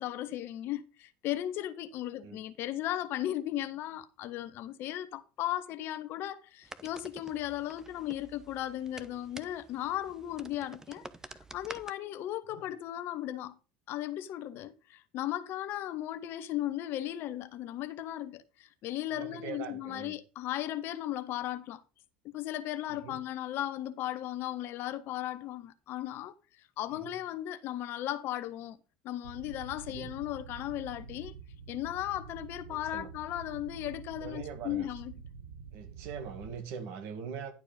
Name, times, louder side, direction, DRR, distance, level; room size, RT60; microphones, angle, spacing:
voice 1, 0.0-11.1 11.3-13.6 13.9-21.8 22.3-28.8 29.0-31.3 31.7-35.1, left 13 dB, 55° left, 0.8 m, -36 dB
sound 1, 6.6-11.9, right 2 dB, 10° right, 0.8 m, -49 dB
voice 2, 19.1-20.2 22.9-23.2 26.9-27.1 29.8-30.1 32.7-33.1 34.2-34.9 35.7-37.5, right 6 dB, 60° right, 2.1 m, -42 dB
sound 2, 29.2-36.6, right 6 dB, 80° right, 0.9 m, -47 dB
11.0 x 4.7 x 5.2 m
hypercardioid pair, 70°, 5 cm